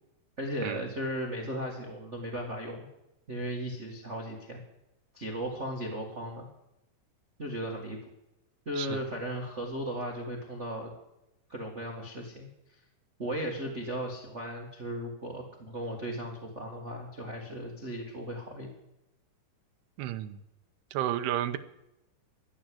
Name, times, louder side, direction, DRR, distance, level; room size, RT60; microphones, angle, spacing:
voice 1, 0.4-2.9 3.3-4.6 5.1-6.5 7.4-8.0 8.6-10.9 11.5-12.5 13.2-18.7, equal, 60° right, 1 dB, 0.7 m, -36 dB
voice 2, 20.0-20.4 20.9-21.6, right 12 dB, 85° right, 9 dB, 2.8 m, -32 dB
14.0 x 9.9 x 7.7 m, 0.89 s
omnidirectional pair, 4.6 m